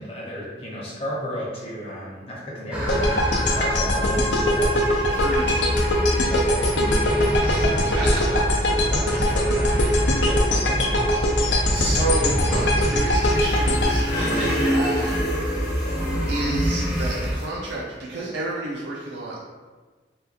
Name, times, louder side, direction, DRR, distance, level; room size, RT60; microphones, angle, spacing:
voice 1, 0.0-4.9 6.3-8.4 8.9-11.3, equal, 35° left, -5 dB, 0.8 m, -34 dB
sound 1, 2.7-17.3, equal, 5° right, 0.4 m, -27 dB
sound 2, 2.9-15.1, left 1 dB, 80° left, 0.5 m, -22 dB
voice 2, 5.1-5.7 7.2-8.4 9.0-9.3 11.7-15.7 16.3-19.4, right 2 dB, 80° right, -4 dB, 0.5 m, -31 dB
sound 3, 13.2-17.5, equal, 65° left, 0.9 m, -27 dB
3.4 x 2.2 x 2.8 m, 1.3 s
head